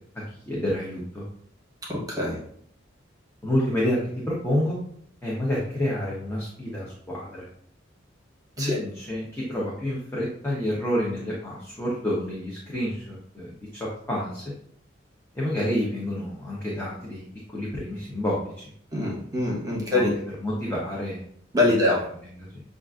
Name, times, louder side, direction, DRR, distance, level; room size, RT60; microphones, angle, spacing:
voice 1, 0.3-1.3 3.4-4.0 4.3-4.8 5.2-7.5 8.6-14.4 15.3-18.7 19.7-20.1 20.4-21.2 21.6-22.6, left 1 dB, 10° left, -6 dB, 0.8 m, -29 dB
voice 2, 1.9-2.4 8.6-8.8 18.9-20.1 21.5-22.0, left 2 dB, 20° right, -4 dB, 1.0 m, -24 dB
6.7 x 2.5 x 2.4 m, 0.64 s
head